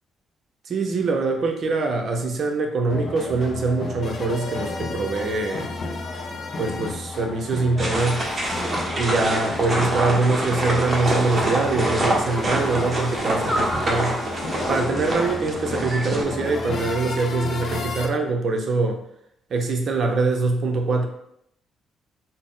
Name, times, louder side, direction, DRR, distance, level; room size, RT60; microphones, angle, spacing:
voice 1, 0.7-5.7 6.6-8.2 9.0-14.2 14.7-19.0 19.5-21.1, right 3 dB, 55° right, 4 dB, 0.6 m, -23 dB
sound 1, 2.9-18.1, left 3 dB, 50° left, 0.5 m, -32 dB
sound 2, 7.8-16.2, right 1 dB, 30° right, 0.9 m, -26 dB
4.0 x 2.0 x 3.7 m, 0.73 s
cardioid pair, 90°, 0 cm